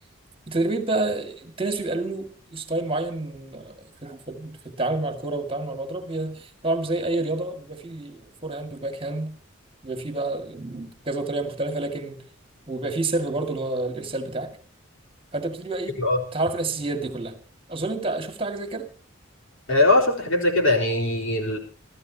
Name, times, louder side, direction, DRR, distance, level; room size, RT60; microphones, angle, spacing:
voice 1, 0.5-9.4 9.8-12.2 12.7-14.5 15.3-16.0 16.3-17.3 17.7-18.9, right 2 dB, 25° right, 2.2 m, -29 dB
voice 2, 19.7-21.6, left 2 dB, 70° left, 4.0 m, -21 dB
29.0 x 13.5 x 2.9 m
head